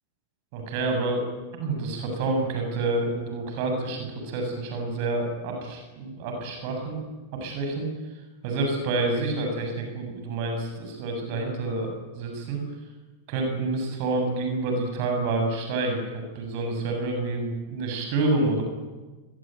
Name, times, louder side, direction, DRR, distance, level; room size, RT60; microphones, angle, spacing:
voice 1, 0.5-1.2 1.6-7.0 7.4-12.6 13.3-18.6, right 2 dB, 45° right, 3 dB, 7.8 m, -28 dB
24.5 x 22.5 x 9.3 m, 1.3 s
figure-of-eight pair, 90°, 0 cm